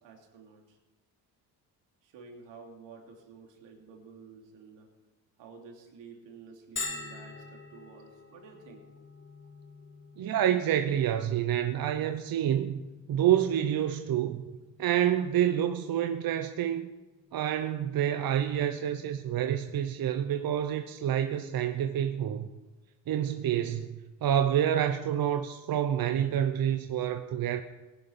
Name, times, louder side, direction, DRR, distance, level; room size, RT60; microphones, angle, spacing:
voice 1, 0.0-0.8 2.0-4.9 5.4-8.8 27.5-27.6, right 5 dB, 80° right, 3.1 m, -51 dB
Bell, 6.8-22.2, left 3 dB, 25° left, 1.8 m, -48 dB
voice 2, 10.2-12.8 13.1-14.4 14.8-16.9 17.3-22.5 23.1-27.6, right 10 dB, 50° right, 0.9 m, -28 dB
18.5 x 11.0 x 4.3 m
cardioid pair, 90°, 44 cm